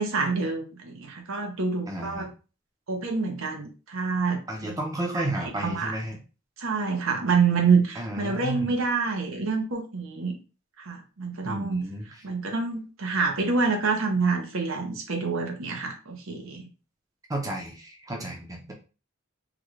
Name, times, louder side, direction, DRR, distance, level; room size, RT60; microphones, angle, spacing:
voice 1, 0.0-2.3 2.9-4.8 5.1-6.0 6.6-10.4 10.8-11.8 12.2-16.7, right 4 dB, 70° right, 3 dB, 0.7 m, -27 dB
voice 2, 1.9-2.3 4.5-6.2 8.0-8.7 11.4-12.1 17.3-18.7, right 1 dB, 15° right, 1 dB, 0.6 m, -32 dB
3.7 x 2.3 x 3.1 m, 0.33 s
head